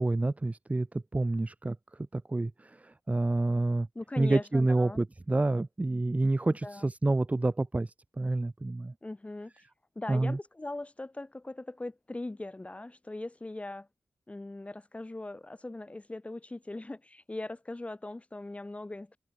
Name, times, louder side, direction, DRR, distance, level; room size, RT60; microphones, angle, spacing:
voice 1, 0.0-1.8 2.1-3.9 4.2-8.9 10.1-10.4, right 2 dB, 20° right, 1.1 m, -28 dB
voice 2, 4.0-5.0 6.6-6.9 9.0-9.6 10.0-13.9 14.3-19.2, left 2 dB, 20° left, 1.8 m, -40 dB
wide cardioid pair, 125°, 6 cm